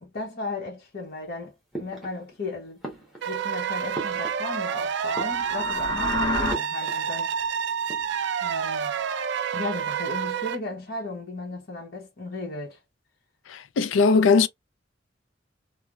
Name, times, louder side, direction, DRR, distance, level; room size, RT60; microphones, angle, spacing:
voice 1, 0.0-2.8 3.2-7.3 8.4-9.0 9.5-12.8, left 2 dB, 55° left, 1.0 m, -35 dB
sound 1, 1.7-2.5 2.8-4.8 5.0-5.9 6.5-7.5 7.7-8.3, right 1 dB, ahead, 1.1 m, -40 dB
sound 2, 3.2-10.6, right 7 dB, 65° right, 0.4 m, -29 dB
sound 3, 5.1-6.5, left 2 dB, 20° left, 1.2 m, -28 dB
voice 2, 13.5-14.5, left 4 dB, 80° left, 0.4 m, -19 dB
3.2 x 2.1 x 2.4 m
head